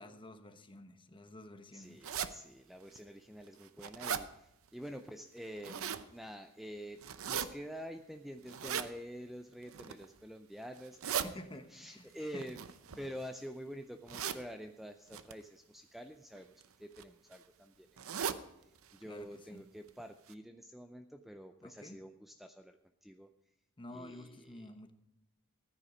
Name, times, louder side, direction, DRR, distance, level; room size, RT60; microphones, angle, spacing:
voice 1, 0.0-2.0 11.2-12.4 12.9-13.1 19.0-19.6 21.6-22.0 23.8-24.9, left 1 dB, 20° left, 8 dB, 1.0 m, -50 dB
voice 2, 1.7-11.3 11.7-12.6 12.9-17.9 18.9-23.3 23.9-24.7, equal, ahead, 6 dB, 0.5 m, -47 dB
sound 1, 2.0-2.3 2.9-3.0 3.5-4.2 5.4-6.0 7.0-7.5 8.5-8.9 9.6-10.0 10.8-11.3 12.4-13.4 14.1-14.4 15.1-15.3 16.3-16.6 17.0-17.1 17.3-17.4 18.0-18.4 18.8-18.9 19.2-19.3 19.9-20.0 20.3-20.4, right 8 dB, 65° right, 0.7 m, -38 dB
14.5 x 9.9 x 5.0 m, 0.83 s
head